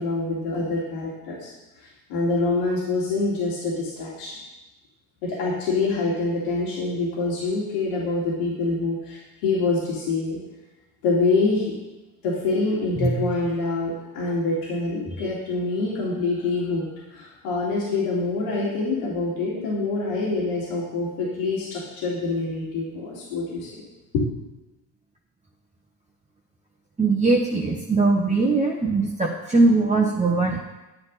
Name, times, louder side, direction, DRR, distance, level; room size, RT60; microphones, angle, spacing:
voice 1, 0.0-1.5 1.8-4.4 5.2-10.4 11.0-11.7 12.2-23.7 24.1-24.2, left 3 dB, 85° left, -6 dB, 3.1 m, -26 dB
voice 2, 27.0-30.6, right 3 dB, 15° right, -1 dB, 1.2 m, -21 dB
9.8 x 9.5 x 4.2 m, 1.1 s
supercardioid pair, 90°, 43 cm